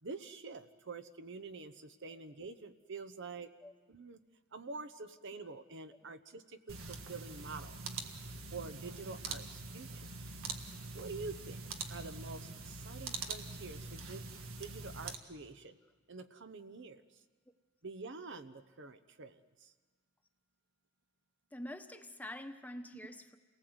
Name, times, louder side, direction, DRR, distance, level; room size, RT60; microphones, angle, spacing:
voice 1, 0.0-3.5 3.9-4.2 4.5-7.8 8.5-10.1 10.9-11.6 11.9-14.3 14.6-15.8 16.1-17.2 17.8-19.7, right 4 dB, 60° right, 10 dB, 1.0 m, -47 dB
sound 1, 6.7-15.1, right 4 dB, 85° right, 1.7 m, -44 dB
voice 2, 21.5-23.4, left 1 dB, 10° left, 6 dB, 1.1 m, -46 dB
28.5 x 19.0 x 8.0 m, 1.4 s
head